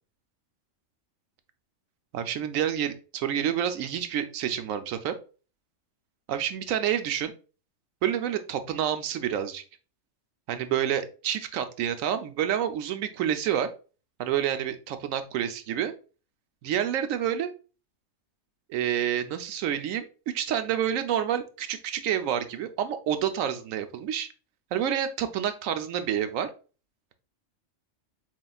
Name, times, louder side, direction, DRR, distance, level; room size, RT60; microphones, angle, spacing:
voice 1, 2.1-5.1 6.3-7.3 8.0-9.6 10.5-13.7 14.2-15.9 16.6-17.5 18.7-24.3 24.7-26.5, right 10 dB, 90° right, 9 dB, 1.0 m, -28 dB
7.3 x 2.5 x 2.3 m, 0.35 s
omnidirectional pair, 1.3 m